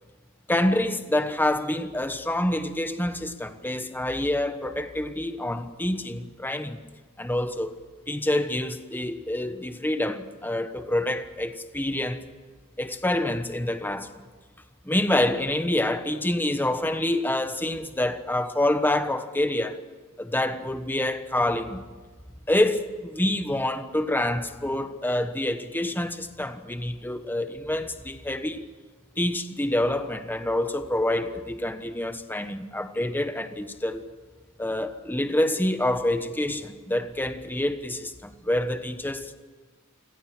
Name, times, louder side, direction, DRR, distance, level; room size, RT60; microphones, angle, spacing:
voice 1, 0.5-6.8 7.2-7.8 8.1-12.2 12.8-14.1 14.8-19.8 20.2-21.8 22.5-28.7 29.2-34.0 34.6-39.3, left 1 dB, 10° left, 1.2 m, -27 dB
29.0 x 17.0 x 6.2 m
head